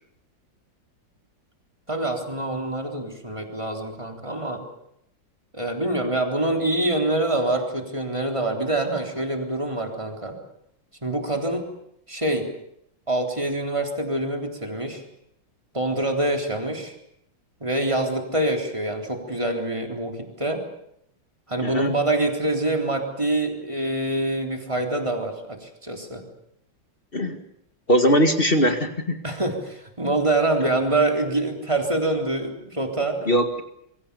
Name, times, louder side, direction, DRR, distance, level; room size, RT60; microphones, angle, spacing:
voice 1, 1.9-4.6 5.5-10.4 11.0-11.7 12.1-12.5 13.1-15.0 15.7-16.9 17.6-20.6 21.5-26.3 29.2-33.3, right 2 dB, 15° right, 2 dB, 3.8 m, -25 dB
voice 2, 21.6-21.9 27.1-27.4 27.9-29.2 33.3-33.6, equal, 30° left, 6 dB, 2.1 m, -20 dB
27.0 x 23.5 x 7.0 m, 0.75 s
omnidirectional pair, 2.1 m